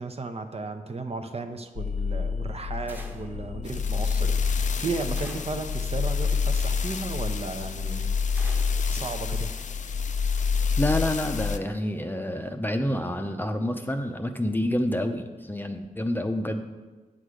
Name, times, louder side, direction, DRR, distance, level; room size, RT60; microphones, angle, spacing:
voice 1, 0.0-8.1 8.9-9.5, right 3 dB, 45° right, 6 dB, 0.7 m, -34 dB
sound 1, 1.8-11.6, left 5 dB, 60° left, 0.4 m, -27 dB
sound 2, 2.9-3.4 5.1-5.7 8.3-8.9, right 1 dB, 15° right, 1.1 m, -45 dB
voice 2, 10.8-16.6, left 1 dB, 15° left, 6 dB, 0.6 m, -28 dB
8.4 x 6.4 x 5.0 m, 1.3 s
wide cardioid pair, 80°, 14 cm